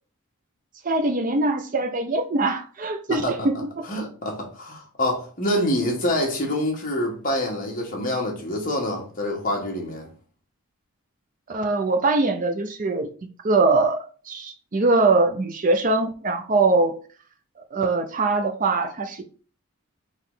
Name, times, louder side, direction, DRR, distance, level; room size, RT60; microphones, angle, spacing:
voice 1, 0.8-3.8 11.5-13.1 13.4-16.9 17.7-19.2, right 3 dB, 40° right, 0.5 m, -22 dB
voice 2, 3.1-3.5 3.9-10.1, left 1 dB, 40° left, 1.3 m, -26 dB
3.8 x 3.0 x 3.8 m
head